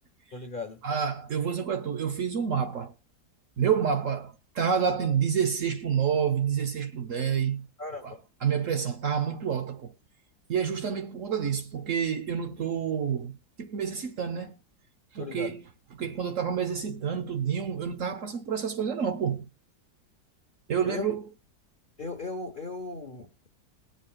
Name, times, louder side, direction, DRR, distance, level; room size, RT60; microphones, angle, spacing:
voice 1, 0.3-0.8 7.8-8.1 15.2-15.6 20.8-21.1 22.0-23.5, left 3 dB, 40° left, 0.9 m, -37 dB
voice 2, 0.8-2.9 3.6-7.7 8.0-8.1 8.4-9.9 10.5-14.6 15.1-15.6 16.0-19.5 20.7-21.2, right 7 dB, 55° right, 1.0 m, -28 dB
19.5 x 9.7 x 2.3 m
omnidirectional pair, 1.9 m